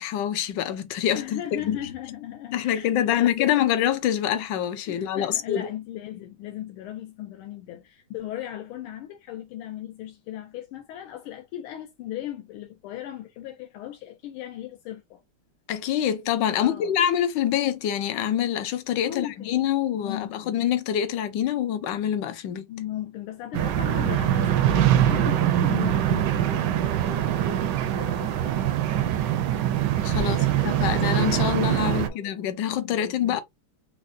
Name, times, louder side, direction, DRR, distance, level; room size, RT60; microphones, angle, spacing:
voice 1, 0.0-1.8 2.5-5.7 15.7-22.7 30.0-30.4 30.6-33.4, left 10 dB, 70° left, 1.2 m, -25 dB
voice 2, 1.1-3.5 4.9-15.2 16.6-16.9 19.0-19.6 19.9-20.5 22.7-29.0 30.2-30.9 31.8-32.3 32.8-33.4, left 12 dB, 90° left, 1.5 m, -37 dB
sound 1, 23.5-32.1, right 11 dB, 75° right, 1.0 m, -23 dB
5.1 x 2.1 x 2.5 m
omnidirectional pair, 2.3 m